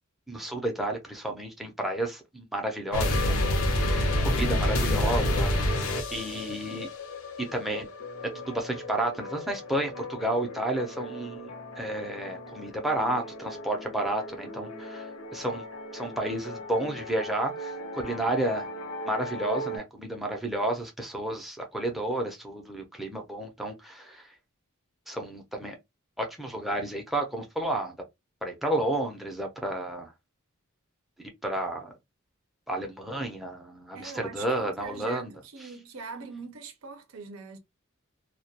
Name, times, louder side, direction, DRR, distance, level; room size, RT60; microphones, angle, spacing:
voice 1, 0.3-6.9 7.4-7.9 8.3-11.5 11.8-15.6 15.9-18.7 19.1-24.3 25.1-25.8 26.2-28.0 28.4-30.1 31.4-31.9 32.7-35.3, right 1 dB, ahead, 0.5 m, -31 dB
sound 1, 2.9-19.8, left 1 dB, 75° left, 0.6 m, -31 dB
voice 2, 33.9-37.6, right 4 dB, 75° right, 0.5 m, -42 dB
2.2 x 2.1 x 2.7 m
head